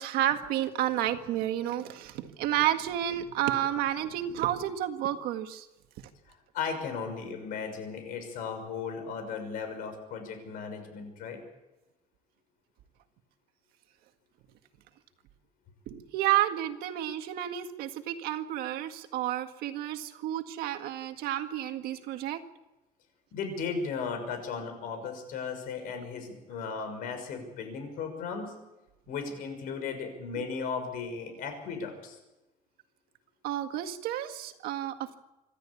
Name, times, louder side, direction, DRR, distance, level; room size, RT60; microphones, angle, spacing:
voice 1, 0.0-5.7 15.9-22.4 30.4-30.5 33.4-35.2, right 12 dB, 85° right, 7 dB, 1.9 m, -31 dB
voice 2, 6.5-11.4 23.3-28.5 29.1-32.2, left 5 dB, 70° left, 7 dB, 6.0 m, -36 dB
26.0 x 13.5 x 8.5 m, 1.0 s
cardioid pair, 165°, 15 cm